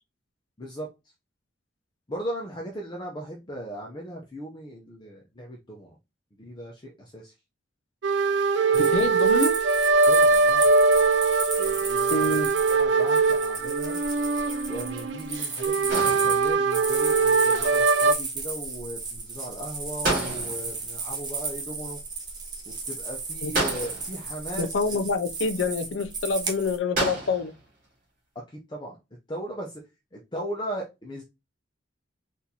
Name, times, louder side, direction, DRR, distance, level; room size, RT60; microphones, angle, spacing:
voice 1, 0.6-0.9 2.1-6.0 6.4-7.3 8.8-8.9 10.1-10.7 11.6-12.4 12.7-14.0 14.7-22.0 22.7-25.0 28.3-29.0 29.3-29.8 30.1-31.2, equal, 25° left, 0.6 m, -37 dB
sound 1, 8.0-18.1, right 4 dB, 75° right, 0.4 m, -22 dB
voice 2, 8.7-9.6 12.1-12.5 23.4-23.5 24.6-27.5, left 3 dB, 80° left, 0.5 m, -26 dB
sound 2, 8.7-26.8, right 4 dB, 25° right, 0.8 m, -34 dB
sound 3, 15.9-16.8 20.0-20.9 23.5-24.3 26.9-27.6, right 2 dB, 50° right, 1.9 m, -30 dB
4.2 x 2.6 x 2.8 m
head